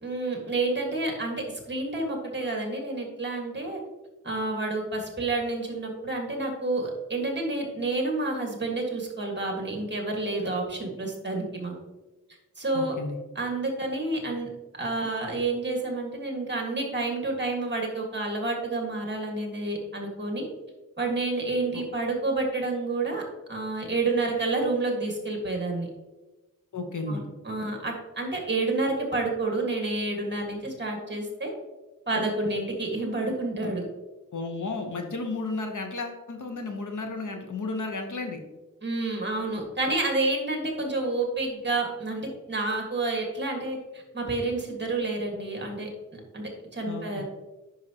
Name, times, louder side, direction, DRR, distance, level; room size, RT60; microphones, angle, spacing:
voice 1, 0.0-3.8 4.2-11.8 12.6-13.0 13.4-14.5 14.8-20.5 21.0-23.2 23.5-25.9 27.1-31.5 32.1-33.9 38.8-47.2, right 2 dB, 35° right, 1 dB, 1.7 m, -29 dB
voice 2, 12.7-13.2 21.7-21.8 26.7-27.2 34.3-38.4 46.8-47.0, left 3 dB, 65° left, 4 dB, 1.0 m, -33 dB
9.8 x 5.7 x 2.9 m, 1.1 s
wide cardioid pair, 115°, 33 cm